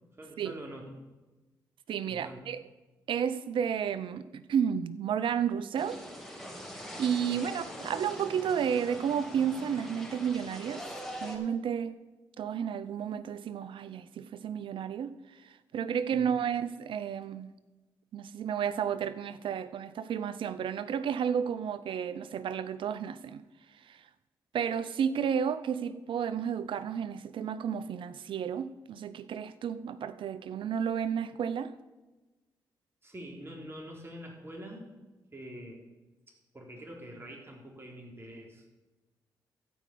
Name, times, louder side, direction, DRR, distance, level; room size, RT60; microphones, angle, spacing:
voice 1, 0.2-1.0 2.1-2.4 7.3-7.4 16.1-16.3 33.0-34.9 35.3-35.8 36.3-38.8, equal, 25° right, 3.7 m, -45 dB
voice 2, 1.9-2.6 3.1-6.0 6.7-10.8 11.2-12.0 12.4-15.1 15.7-17.5 18.1-23.4 23.9-24.0 24.5-31.7, right 8 dB, 70° right, 0.6 m, -32 dB
sound 1, 5.8-11.4, equal, ahead, 3.3 m, -43 dB
13.5 x 5.3 x 8.4 m
supercardioid pair, 50°, 9 cm